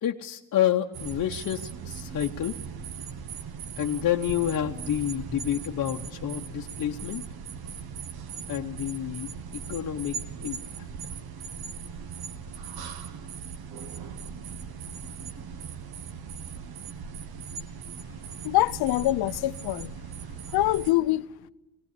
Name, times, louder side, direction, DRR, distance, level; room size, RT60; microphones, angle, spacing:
voice 1, 0.0-2.6 3.8-7.2 8.5-10.9, left 11 dB, 55° left, 0.9 m, -29 dB
sound 1, 0.9-20.9, right 6 dB, 70° right, 1.3 m, -39 dB
voice 2, 18.4-19.9 20.5-21.3, left 16 dB, 80° left, 0.6 m, -24 dB
18.5 x 17.0 x 8.3 m
cardioid pair, 110°, 38 cm